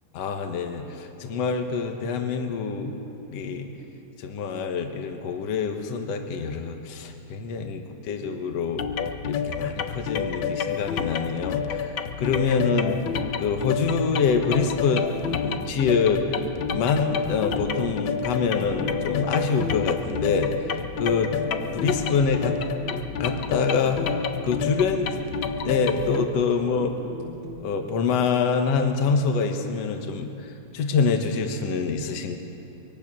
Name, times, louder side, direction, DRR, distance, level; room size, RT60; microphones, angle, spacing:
voice 1, 0.1-2.9 3.3-3.7 4.2-8.8 9.3-13.0 13.4-16.2 16.7-20.5 21.0-21.3 21.7-24.0 24.4-25.1 25.4-27.0 27.6-30.3 30.7-32.4, left 5 dB, 65° left, 4 dB, 2.4 m, -25 dB
sound 1, 8.8-26.2, left 7 dB, 85° left, 1.1 m, -29 dB
sound 2, 14.7-27.6, right 3 dB, 65° right, 4.1 m, -40 dB
24.0 x 22.5 x 6.2 m, 2.7 s
omnidirectional pair, 3.3 m